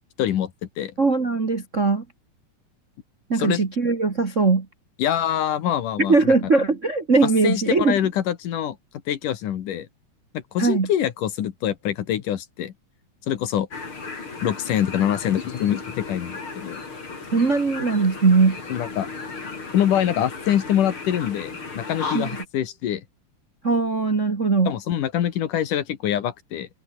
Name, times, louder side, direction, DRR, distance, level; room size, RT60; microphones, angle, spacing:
voice 1, 0.2-0.5 0.8-0.9 3.4-3.6 5.0-6.3 7.2-8.8 9.1-9.9 10.3-12.7 13.3-13.7 14.4-16.8 18.7-19.1 19.7-23.0 24.7-26.7, left 10 dB, 70° left, 3.1 m, -25 dB
voice 2, 1.0-2.0 3.3-4.7 6.1-8.0 10.6-10.9 17.3-18.6 22.1-22.3 23.6-24.7, right 4 dB, 30° right, 1.4 m, -20 dB
sound 1, 13.7-22.5, left 4 dB, 40° left, 5.0 m, -35 dB
omnidirectional pair, 3.9 m